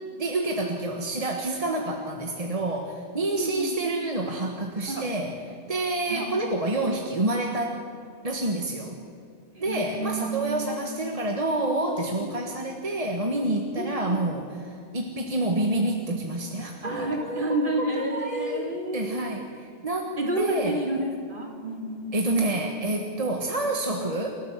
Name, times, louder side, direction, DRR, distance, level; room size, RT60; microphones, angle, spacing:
voice 1, 0.2-5.4 5.7-7.8 8.2-9.0 9.6-20.8 22.1-24.3, right 2 dB, 35° right, 2 dB, 1.7 m, -28 dB
voice 2, 3.4-3.7 4.9-5.0 6.1-6.3 9.5-11.2 12.3-12.5 13.8-14.2 15.5-15.6 16.8-19.1 20.2-22.1 24.0-24.2, right 2 dB, 55° right, 0 dB, 3.6 m, -30 dB
29.0 x 13.0 x 7.4 m, 2.5 s
omnidirectional pair, 1.0 m